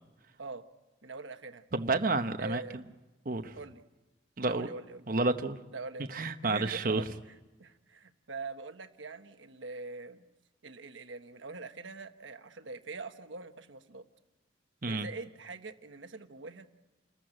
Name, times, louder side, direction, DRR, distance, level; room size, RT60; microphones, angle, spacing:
voice 1, 1.0-1.6 2.4-2.8 3.6-3.8 4.4-5.1 5.7-6.1 6.4-7.1 7.6-10.3 10.6-14.0 14.9-16.7, right 3 dB, 90° right, 8 dB, 1.3 m, -43 dB
voice 2, 1.7-2.6 3.2-3.6 4.4-4.7 5.1-5.6 6.1-7.0 14.8-15.1, right 3 dB, 50° right, 7 dB, 0.9 m, -30 dB
28.5 x 14.5 x 9.0 m, 1.1 s
head